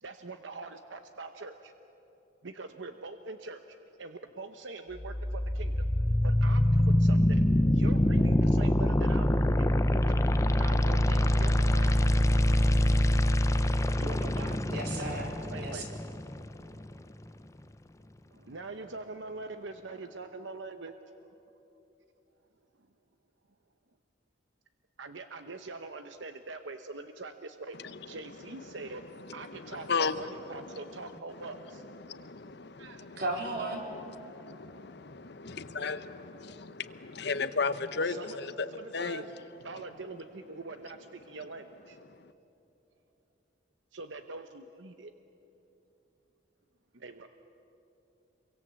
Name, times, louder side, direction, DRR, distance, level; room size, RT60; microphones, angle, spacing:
voice 1, 0.0-1.7 2.4-5.9 6.2-7.5 7.7-9.7 10.0-10.1 10.6-12.0 13.5-16.0 18.3-20.9 25.0-27.8 28.1-31.8 32.8-33.1 33.3-33.4 38.0-38.4 38.7-39.3 39.6-42.0 43.9-45.1 46.9-47.3, right 3 dB, 70° right, 0.9 m, -43 dB
sound 1, 5.0-17.0, left 1 dB, 15° left, 0.6 m, -25 dB
voice 2, 14.7-15.3 15.6-15.8 33.2-33.8, right 2 dB, 55° right, 4.2 m, -34 dB
voice 3, 29.3-30.8 31.4-31.5 31.8-33.2 33.8-39.2 42.2-42.3, left 4 dB, 60° left, 0.9 m, -35 dB
27.0 x 24.0 x 7.6 m
head